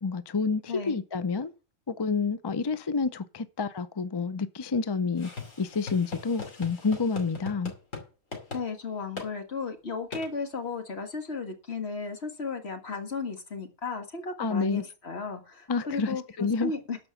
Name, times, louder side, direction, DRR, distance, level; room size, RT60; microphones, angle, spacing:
voice 1, 0.0-1.5 1.9-5.3 5.6-7.7 14.4-14.8 15.7-16.7, left 4 dB, 35° left, 0.4 m, -29 dB
sound 1, 5.2-8.0 8.3-8.6 9.2-9.3 10.1-10.3, left 4 dB, 85° left, 2.9 m, -39 dB
voice 2, 8.5-17.0, left 4 dB, 55° left, 1.9 m, -35 dB
12.5 x 5.2 x 7.1 m
omnidirectional pair, 1.3 m